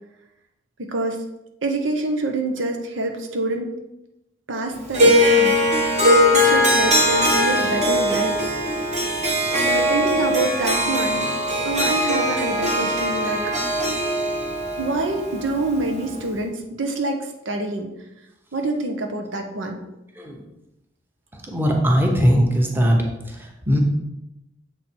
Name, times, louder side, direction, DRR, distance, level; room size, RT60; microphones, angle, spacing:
voice 1, 0.8-1.2 1.6-3.7 4.5-5.6 6.3-8.4 9.7-11.3 11.6-13.4 14.8-17.9 18.5-19.8, right 2 dB, 85° right, 3 dB, 1.0 m, -26 dB
Harp, 4.9-16.2, equal, 40° right, 1.4 m, -20 dB
voice 2, 21.3-23.0 23.2-23.8, equal, 10° right, 0 dB, 1.1 m, -20 dB
7.1 x 4.5 x 4.5 m, 0.90 s
head